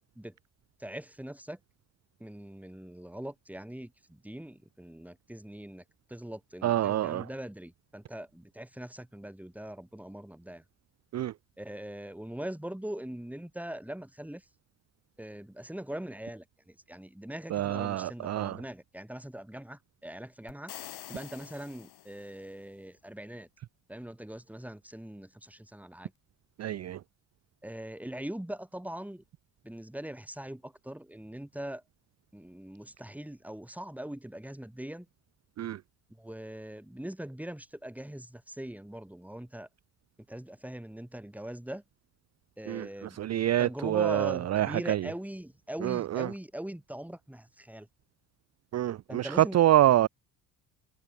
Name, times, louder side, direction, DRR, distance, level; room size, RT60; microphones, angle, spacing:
voice 1, 0.8-1.6 2.2-5.8 6.1-10.6 11.6-14.4 15.2-20.8 21.1-23.5 23.9-26.1 27.6-29.2 29.6-31.8 32.3-35.1 36.1-39.7 40.3-41.8 42.6-43.2 43.6-47.9 49.1-49.6 49.9-50.0, right 1 dB, 5° right, 2.5 m, -41 dB
voice 2, 6.6-7.3 11.1-11.3 17.5-18.6 26.6-27.0 35.6-35.8 42.7-45.1 45.8-46.3 48.7-50.1, right 13 dB, 40° right, 0.6 m, -26 dB
sound 1, 20.5-22.6, left 14 dB, 65° left, 3.8 m, -46 dB
hypercardioid pair, 55°, 41 cm